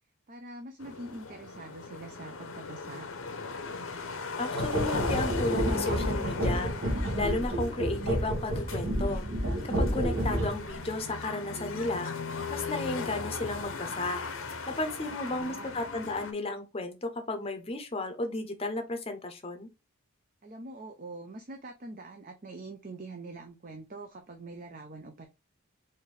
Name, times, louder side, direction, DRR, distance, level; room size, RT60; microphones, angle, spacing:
voice 1, 0.3-3.1 15.0-15.7 20.4-25.3, right 2 dB, 40° right, 0.5 m, -44 dB
sound 1, 0.8-16.3, left 4 dB, 65° left, 0.7 m, -37 dB
voice 2, 4.4-6.7 7.2-9.3 9.6-12.1 12.5-14.2 14.7-19.7, left 2 dB, 25° left, 0.7 m, -33 dB
sound 2, 4.5-10.7, equal, 60° right, 1.2 m, -30 dB
4.2 x 2.6 x 3.2 m
head